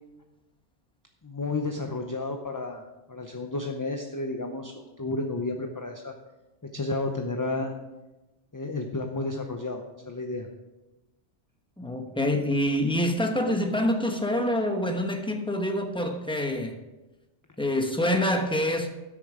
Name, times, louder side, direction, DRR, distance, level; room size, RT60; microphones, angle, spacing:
voice 1, 1.2-6.1 6.6-7.7 8.5-10.5, left 2 dB, 20° left, 0.6 m, -32 dB
voice 2, 11.8-16.8 17.6-18.9, left 1 dB, 5° left, 0.9 m, -26 dB
12.5 x 6.8 x 5.0 m
omnidirectional pair, 1.2 m